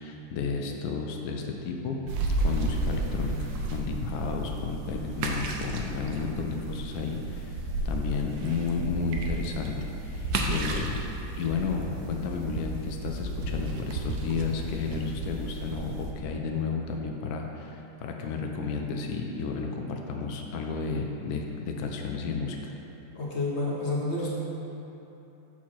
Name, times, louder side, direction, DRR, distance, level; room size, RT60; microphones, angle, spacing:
voice 1, 0.0-2.0 2.4-7.6 7.8-11.0 11.4-22.7, left 5 dB, 70° left, 1 dB, 0.9 m, -32 dB
sound 1, 2.1-16.1, right 2 dB, 70° right, 1.0 m, -33 dB
voice 2, 23.1-24.3, left 2 dB, 45° left, -5 dB, 0.9 m, -29 dB
7.1 x 4.6 x 4.4 m, 3.0 s
omnidirectional pair, 2.1 m